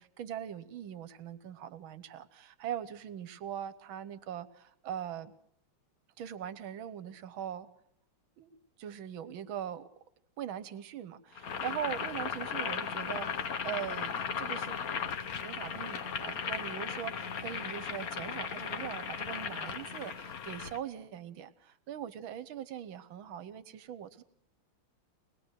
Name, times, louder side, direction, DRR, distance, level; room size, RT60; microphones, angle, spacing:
voice 1, 0.0-5.3 6.2-7.7 8.4-9.9 10.4-15.1 15.4-24.2, right 10 dB, 70° right, 14 dB, 1.7 m, -41 dB
Boiling, 11.4-20.8, left 7 dB, 50° left, 1.3 m, -36 dB
22.5 x 20.5 x 6.5 m, 0.70 s
omnidirectional pair, 2.4 m